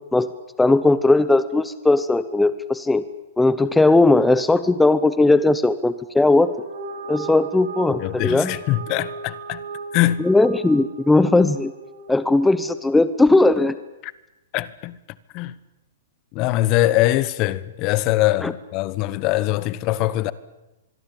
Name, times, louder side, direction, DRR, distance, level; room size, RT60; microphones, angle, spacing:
voice 1, 0.6-3.0 3.4-6.5 7.1-8.6 10.2-11.7 12.1-13.8 18.4-18.5, left 2 dB, 5° left, 0.8 m, -18 dB
sound 1, 6.5-13.0, right 4 dB, 70° right, 5.4 m, -37 dB
voice 2, 8.0-9.6 9.9-10.3 14.0-14.1 14.5-15.0 15.3-15.6 16.3-20.3, left 16 dB, 35° left, 1.1 m, -22 dB
25.0 x 22.0 x 9.1 m
hypercardioid pair, 150°, 0 cm